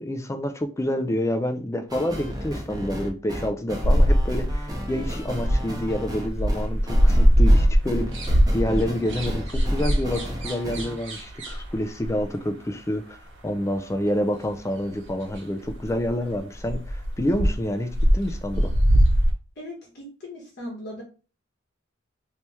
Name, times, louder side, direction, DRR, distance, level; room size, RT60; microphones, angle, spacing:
voice 1, 0.0-18.7, left 1 dB, 15° left, 0.3 m, -28 dB
sound 1, 1.9-11.0, equal, 20° right, 0.7 m, -34 dB
sound 2, 3.8-5.9 6.3-12.2 14.6-14.7 15.1-15.2 15.3-15.4 15.7-16.1 16.4-17.6 17.9-19.3, equal, 70° right, 1.3 m, -21 dB
voice 2, 19.6-21.0, left 1 dB, 55° left, 1.1 m, -38 dB
3.0 x 2.8 x 3.4 m
head